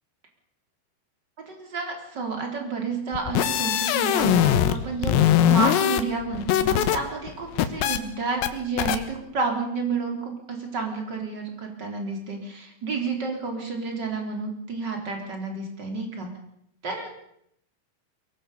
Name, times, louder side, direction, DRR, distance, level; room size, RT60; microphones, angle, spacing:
voice 1, 1.4-16.3 16.8-17.1, right 4 dB, 25° right, 2 dB, 3.8 m, -30 dB
sound 1, 3.1-4.8 5.0-7.0 7.3-8.0 8.4-8.5 8.8-9.0, left 11 dB, 90° left, 3.8 m, -21 dB
23.0 x 18.0 x 7.0 m, 0.72 s
omnidirectional pair, 5.7 m